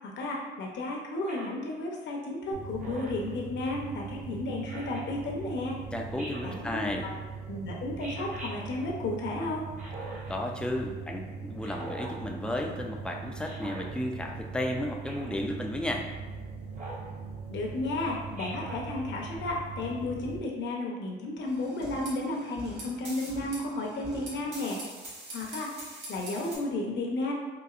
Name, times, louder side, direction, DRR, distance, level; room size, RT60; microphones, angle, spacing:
voice 1, 0.0-5.8 6.4-7.1 7.5-9.7 17.5-24.8 25.3-27.3, left 2 dB, 65° left, -1 dB, 0.7 m, -33 dB
Speech synthesizer, 1.3-1.6 2.8-3.3 4.7-5.0 6.2-6.6 8.0-8.5 9.8-10.3 11.6-12.2 13.4-13.8 15.1-15.4 16.7-17.1 18.4-18.8, right 1 dB, 40° right, 1.0 m, -42 dB
sound 1, 2.5-20.4, right 5 dB, 90° right, 0.7 m, -41 dB
voice 2, 5.9-7.1 10.3-16.0, left 1 dB, 5° left, 2 dB, 0.4 m, -33 dB
sound 2, 21.4-26.5, right 1 dB, 70° right, 1.3 m, -43 dB
4.0 x 2.5 x 2.4 m, 1.3 s
cardioid pair, 90°, 20 cm